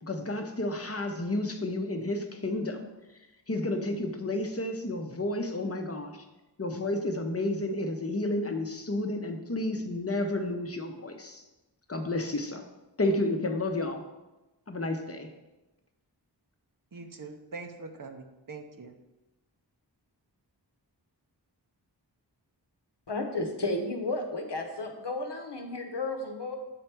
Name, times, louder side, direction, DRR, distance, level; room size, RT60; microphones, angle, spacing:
voice 1, 0.0-2.8 3.5-6.2 6.6-11.4 11.9-12.6 13.0-14.0 14.7-15.3, left 2 dB, 35° left, 5 dB, 0.7 m, -31 dB
voice 2, 16.9-18.9, right 3 dB, 50° right, 6 dB, 0.7 m, -43 dB
voice 3, 23.1-26.6, left 2 dB, 70° left, 4 dB, 0.9 m, -33 dB
7.9 x 3.3 x 4.5 m, 1.0 s
wide cardioid pair, 45°, 42 cm